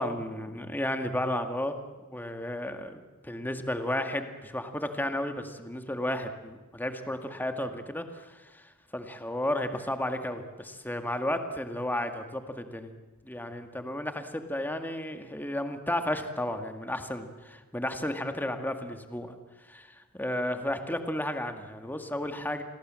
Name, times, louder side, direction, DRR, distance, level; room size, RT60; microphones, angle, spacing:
voice 1, 0.0-1.8 2.1-12.9 13.2-22.6, left 1 dB, 10° left, 7 dB, 1.9 m, -33 dB
29.0 x 22.0 x 7.6 m, 1.2 s
head